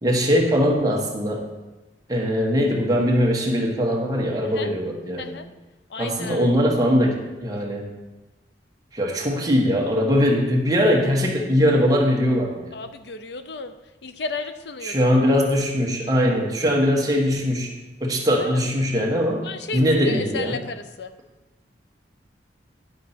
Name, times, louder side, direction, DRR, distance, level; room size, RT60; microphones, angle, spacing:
voice 1, 0.0-1.4 2.1-5.3 6.0-7.8 8.9-12.7 14.8-17.7 18.0-19.5 19.7-20.6, equal, 20° right, -1 dB, 1.2 m, -21 dB
voice 2, 5.9-6.5 12.7-13.7 14.0-15.2 18.4-18.6 19.4-21.1, left 4 dB, 70° left, 10 dB, 0.6 m, -33 dB
10.5 x 4.0 x 5.7 m, 1.1 s
head